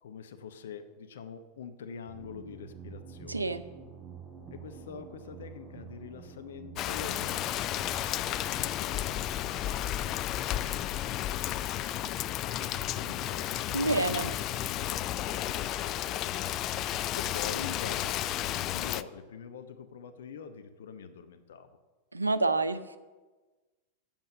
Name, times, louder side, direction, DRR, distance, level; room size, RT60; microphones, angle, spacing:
voice 1, 0.0-3.6 4.5-7.4 8.2-11.7 12.9-14.2 14.7-16.5 16.8-21.7, left 6 dB, 60° left, 9 dB, 0.7 m, -45 dB
sound 1, 2.1-13.6, right 7 dB, 15° right, 3.9 m, -50 dB
voice 2, 3.3-3.6 13.7-14.3 22.1-23.0, right 2 dB, 80° right, 12 dB, 0.5 m, -28 dB
Rain, 6.8-19.0, left 12 dB, 35° left, 0.3 m, -32 dB
7.6 x 7.2 x 7.4 m, 1.2 s
figure-of-eight pair, 90°, 0 cm